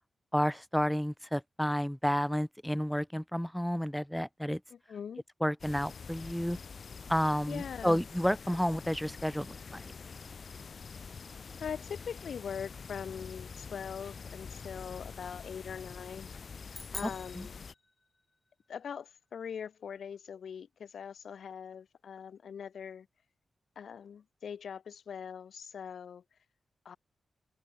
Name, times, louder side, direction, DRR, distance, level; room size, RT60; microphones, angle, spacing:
voice 1, 0.3-4.6 5.4-6.6 7.1-9.9 17.0-17.1 17.4-17.5, equal, ahead, 1.7 m, -31 dB
voice 2, 4.7-5.2 7.5-8.0 11.6-16.3 16.9-17.6 18.7-23.1 23.8-26.2 26.8-27.0, left 7 dB, 75° left, 2.9 m, -42 dB
sound 1, 5.6-17.7, left 5 dB, 50° left, 2.3 m, -46 dB
sound 2, 16.7-18.4, left 2 dB, 20° left, 2.1 m, -46 dB
wide cardioid pair, 140°, 0 cm